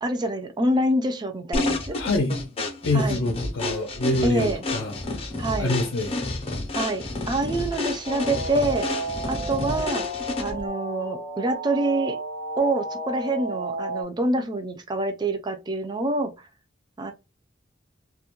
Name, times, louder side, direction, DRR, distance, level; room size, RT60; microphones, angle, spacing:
voice 1, 0.0-2.0 2.9-3.2 4.2-4.6 5.4-5.7 6.7-8.9 9.2-10.1 10.4-12.2 12.6-16.3 17.0-17.1, right 1 dB, 25° right, 0.4 m, -26 dB
sound 1, 1.5-10.7, left 2 dB, 30° left, 0.5 m, -30 dB
voice 2, 1.9-2.3 2.8-5.0 5.6-6.1, left 2 dB, 80° left, 0.5 m, -25 dB
sound 2, 8.0-14.0, right 1 dB, 70° right, 0.9 m, -32 dB
2.2 x 2.1 x 2.8 m
head